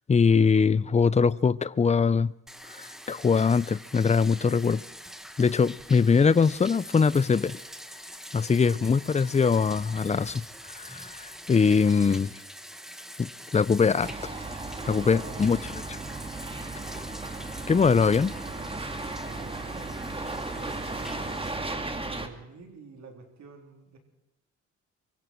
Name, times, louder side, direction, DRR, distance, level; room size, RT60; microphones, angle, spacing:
voice 1, 0.1-2.3 2.8-4.8 5.4-7.6 8.3-10.4 10.8-12.3 13.2-14.1 14.9-15.6 17.7-18.3, left 5 dB, 20° left, 0.6 m, -22 dB
Bathtub (filling or washing), 2.5-21.6, equal, ahead, 1.8 m, -45 dB
voice 2, 8.5-9.1 15.2-15.6 19.2-20.1 20.5-21.5 22.1-24.0, right 4 dB, 65° right, 4.0 m, -48 dB
sound 1, 14.0-22.3, right 2 dB, 20° right, 2.5 m, -35 dB
24.0 x 23.0 x 4.7 m
cardioid pair, 90°, 30 cm